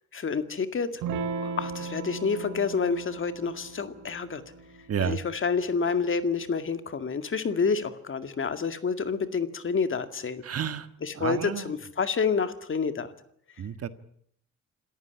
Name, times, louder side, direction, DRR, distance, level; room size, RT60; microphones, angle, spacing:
voice 1, 0.1-1.0 1.4-4.4 5.0-10.4 11.0-13.1, left 5 dB, 40° left, 10 dB, 2.1 m, -28 dB
Electric guitar / Strum, 1.0-6.1, right 4 dB, 85° right, 3.2 m, -37 dB
voice 2, 4.9-5.2 10.4-10.9 11.1-11.7 13.6-13.9, right 8 dB, 50° right, 11 dB, 1.6 m, -31 dB
27.0 x 14.5 x 9.9 m, 0.69 s
cardioid pair, 90°, 30 cm